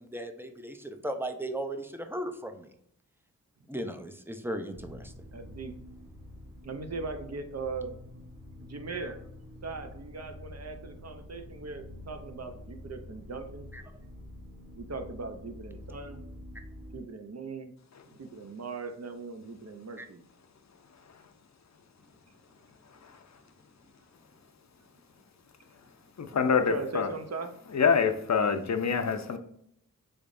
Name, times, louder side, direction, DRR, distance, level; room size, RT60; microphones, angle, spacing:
voice 1, 0.0-2.7 3.7-5.1 8.9-9.1 13.7-13.8 20.0-20.1, right 1 dB, 5° right, 6 dB, 0.5 m, -37 dB
sound 1, 4.7-17.0, left 1 dB, 85° right, 0.9 m, -47 dB
voice 2, 5.3-5.7 6.6-8.0 8.6-9.2 9.6-13.7 14.8-16.2 16.9-17.7 18.1-20.2 26.7-27.5, right 4 dB, 50° right, 7 dB, 0.6 m, -39 dB
voice 3, 26.2-27.1 27.7-29.4, left 6 dB, 55° left, 7 dB, 0.5 m, -26 dB
3.8 x 3.4 x 2.5 m, 0.71 s
wide cardioid pair, 60°, 33 cm